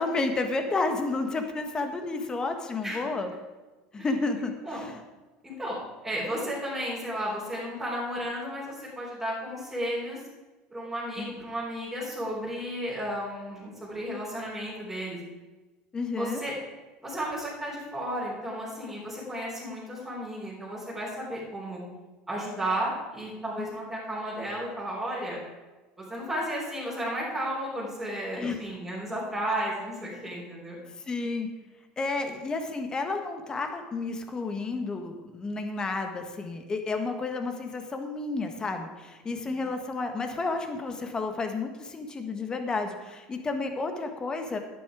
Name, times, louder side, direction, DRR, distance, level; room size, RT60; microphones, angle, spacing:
voice 1, 0.0-3.3 3.9-5.0 11.2-11.3 15.9-16.4 23.6-23.7 28.4-28.6 31.1-31.5 32.0-44.6, left 3 dB, 20° left, 6 dB, 1.5 m, -31 dB
voice 2, 2.8-3.1 4.0-4.1 4.4-4.9 5.4-5.8 6.0-10.2 10.7-15.2 16.2-16.5 17.0-21.8 22.3-25.4 26.0-30.8 39.6-39.7, equal, 10° right, -10 dB, 4.1 m, -33 dB
11.0 x 10.0 x 4.9 m, 1.2 s
supercardioid pair, 120°, 3 cm